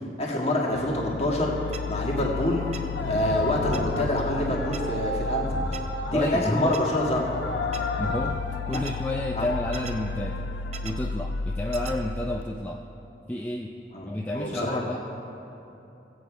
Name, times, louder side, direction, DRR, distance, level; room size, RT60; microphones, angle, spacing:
voice 1, 0.2-1.5 1.9-2.7 3.1-5.6 6.1-7.2 8.7-8.8 9.4-9.5 13.9-14.1 14.3-14.8, left 1 dB, 35° left, -2 dB, 1.7 m, -26 dB
sound 1, 0.7-12.4, left 4 dB, 85° left, 0.4 m, -34 dB
sound 2, 1.7-1.8 2.7-2.8 3.7-3.8 4.7-4.8 5.7-5.8 6.7-6.8 7.7-7.8 8.7-8.9 9.7-9.9 10.7-10.9 11.7-11.9, right 7 dB, 35° right, 0.6 m, -38 dB
sound 3, 2.9-8.3, left 2 dB, 70° left, 1.0 m, -31 dB
voice 2, 6.1-6.8 8.0-10.4 10.8-12.8 13.3-13.8 14.0-15.0, left 1 dB, 10° left, 0 dB, 0.4 m, -30 dB
16.5 x 8.0 x 5.0 m, 2.9 s
head